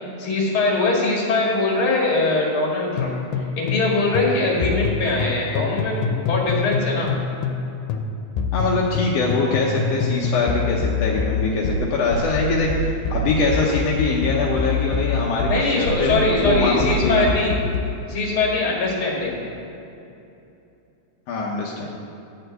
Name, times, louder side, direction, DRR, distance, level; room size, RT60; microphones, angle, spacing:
voice 1, 0.2-3.2 3.6-7.1 15.5-17.5 18.1-19.4, left 2 dB, 45° left, -3 dB, 2.4 m, -22 dB
sound 1, 3.0-3.9 4.2-7.6 7.9-18.0, left 4 dB, 90° left, 2.2 m, -25 dB
voice 2, 8.5-17.4 21.3-22.0, left 3 dB, 75° left, -3 dB, 1.5 m, -23 dB
11.0 x 4.4 x 7.9 m, 2.7 s
omnidirectional pair, 3.8 m